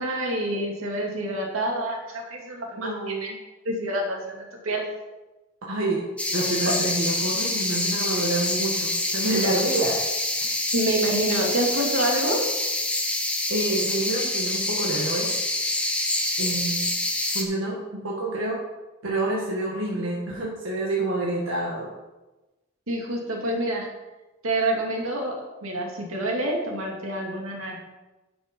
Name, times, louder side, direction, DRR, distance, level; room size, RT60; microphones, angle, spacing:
voice 1, 0.0-3.3 3.6-4.9 10.7-12.4 22.9-23.9 24.4-25.4 25.6-27.8, right 1 dB, 85° right, 0 dB, 2.3 m, -27 dB
voice 2, 2.7-3.4 5.6-6.0 6.3-10.0 10.4-10.5 13.5-15.3 16.4-16.9 17.3-18.6 19.0-21.9, right 2 dB, 70° right, -3 dB, 1.7 m, -28 dB
sound 1, 6.2-17.4, left 2 dB, 5° left, 1.0 m, -26 dB
10.0 x 6.1 x 5.3 m, 1.1 s
head